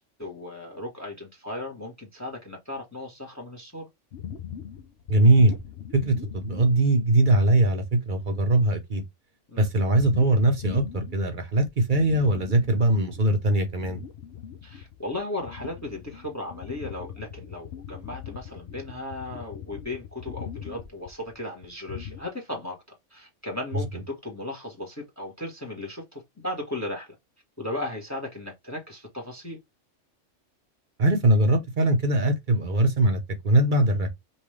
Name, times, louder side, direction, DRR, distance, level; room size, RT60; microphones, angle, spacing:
voice 1, 0.0-3.9 9.5-9.7 14.6-27.1 27.6-29.6, left 1 dB, 15° left, 1.2 m, -36 dB
sound 1, 4.1-7.2 7.7-7.8 8.2-8.5 9.9-11.3 11.6-13.3 13.6-22.3, left 9 dB, 60° left, 0.8 m, -41 dB
voice 2, 5.1-5.6 5.9-9.0 9.6-14.0 31.0-34.1, right 2 dB, 45° right, 1.1 m, -21 dB
5.5 x 2.6 x 3.2 m
omnidirectional pair, 1.3 m